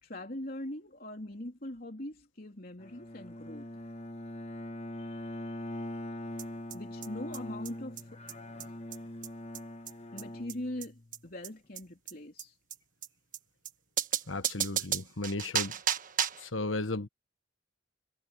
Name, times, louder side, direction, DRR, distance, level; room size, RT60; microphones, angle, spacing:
voice 1, 0.0-3.7 6.7-8.2 10.1-12.6, left 1 dB, 50° left, 3.5 m, -41 dB
Bowed string instrument, 2.8-11.3, left 1 dB, 30° left, 1.4 m, -42 dB
sound 1, 6.4-6.5 6.7-6.8 7.0-7.1 7.3-7.4 7.6-7.7 8.0-8.1 8.3-8.4 8.6-8.7 8.9-9.0 9.2-9.3 9.5-9.6 9.9-10.0 10.2-10.3 10.5-10.6 10.8-10.9 11.1-11.2 11.4-11.5 11.7-11.8 12.1-12.2 12.4-12.5 12.7-12.8 13.0-13.1 13.3-13.4 13.6-13.7 14.0-16.5, right 9 dB, 40° right, 1.4 m, -33 dB
voice 2, 14.3-15.8 16.4-17.1, left 2 dB, 80° left, 1.5 m, -34 dB
head